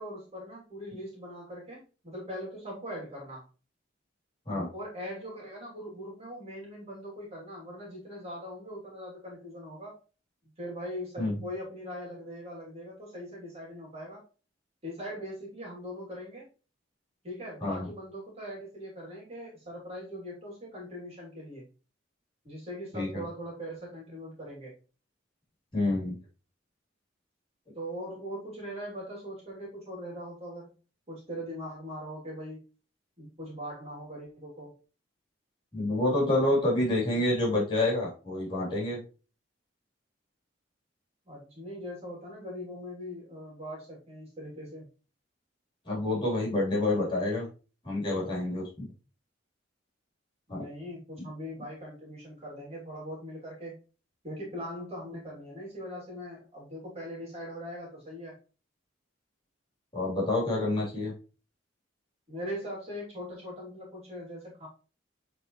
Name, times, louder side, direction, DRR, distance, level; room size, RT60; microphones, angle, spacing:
voice 1, 0.0-3.4 4.5-10.0 10.6-14.2 14.8-16.5 17.2-21.7 22.4-24.7 27.7-30.7 31.1-32.6 33.2-34.7 41.3-44.9 50.5-53.8 54.2-58.4 62.3-64.7, equal, 35° right, -4 dB, 3.0 m, -41 dB
voice 2, 25.7-26.2 35.7-39.0 45.9-47.5 47.8-48.9 50.5-50.6 51.2-51.3 59.9-61.1, left 1 dB, 25° left, -5 dB, 3.6 m, -28 dB
8.2 x 4.2 x 3.1 m, 0.34 s
head